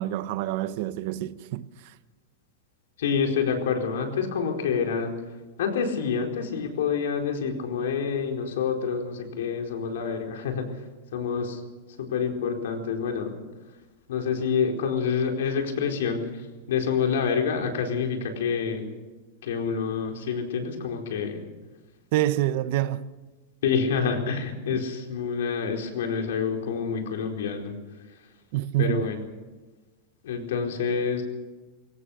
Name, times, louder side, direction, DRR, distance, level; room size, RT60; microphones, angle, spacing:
voice 1, 0.0-1.7 22.1-23.1 24.7-24.8 28.5-29.1, right 14 dB, 45° right, 0.8 m, -27 dB
voice 2, 3.0-5.1 5.6-10.7 11.1-11.6 12.0-13.3 14.1-16.2 16.7-18.9 19.4-21.4 23.6-27.7 28.8-29.2 30.2-31.2, left 6 dB, 80° left, 4.5 m, -27 dB
22.5 x 17.5 x 6.7 m
supercardioid pair, 175°, 0 cm